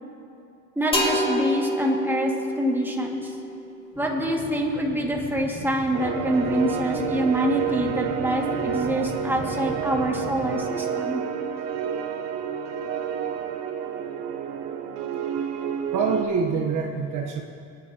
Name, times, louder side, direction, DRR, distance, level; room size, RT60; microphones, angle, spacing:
voice 1, 0.8-3.3 4.0-11.2, right 1 dB, 5° right, -1 dB, 2.0 m, -25 dB
sound 1, 0.9-4.6, left 1 dB, 15° left, 2.8 m, -29 dB
sound 2, 3.9-10.5, left 1 dB, 35° left, 2.5 m, -38 dB
sound 3, 5.9-16.3, right 8 dB, 90° right, 0.9 m, -30 dB
voice 2, 15.9-17.4, right 5 dB, 55° right, 2 dB, 1.1 m, -25 dB
27.0 x 9.6 x 2.9 m, 2.6 s
supercardioid pair, 95°, 36 cm